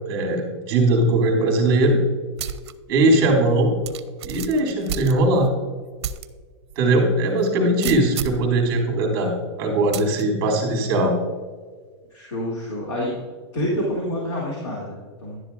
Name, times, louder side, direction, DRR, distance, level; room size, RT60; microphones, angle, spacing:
voice 1, 0.1-2.0 2.9-3.7 4.2-5.5 6.8-9.3 9.6-11.1, right 2 dB, 25° right, 0 dB, 2.1 m, -20 dB
sound 1, 2.4-2.7 3.1-3.2 3.8-5.5 6.0-6.3 6.7-6.8 7.8-8.5 9.9-10.2, right 8 dB, 65° right, 0.6 m, -31 dB
voice 2, 12.1-13.2 13.5-15.4, equal, 85° left, -4 dB, 2.6 m, -28 dB
11.0 x 10.0 x 2.5 m, 1.5 s
supercardioid pair, 180°, 15 cm